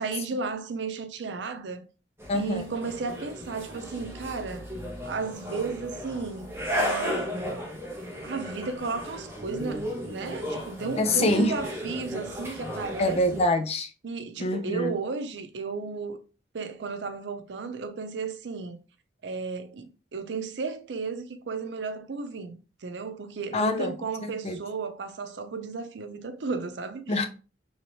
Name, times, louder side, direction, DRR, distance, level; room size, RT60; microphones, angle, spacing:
voice 1, 0.0-1.9 2.3-4.7 5.0-7.7 8.2-13.4 14.0-16.2 16.5-18.8 19.2-27.3, right 4 dB, 85° right, 0.5 m, -34 dB
sound 1, 2.2-13.5, equal, 15° right, 0.8 m, -35 dB
voice 2, 2.3-2.6 11.0-11.5 13.0-13.9 14.4-14.9 23.5-23.9 24.2-24.6 27.1-27.3, left 1 dB, 35° left, 0.5 m, -25 dB
3.2 x 2.8 x 2.9 m
head